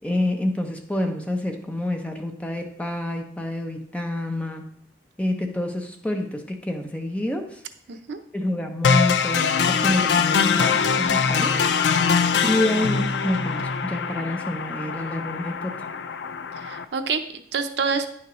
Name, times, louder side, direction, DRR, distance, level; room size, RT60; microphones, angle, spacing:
voice 1, 0.0-4.7 5.2-7.6 8.3-11.6 12.4-15.9, left 1 dB, 5° left, 3 dB, 0.6 m, -28 dB
voice 2, 7.9-8.2 16.6-18.1, right 5 dB, 75° right, 8 dB, 0.6 m, -27 dB
sound 1, 8.8-16.8, left 6 dB, 80° left, 0.4 m, -23 dB
10.0 x 5.8 x 3.0 m, 0.66 s
head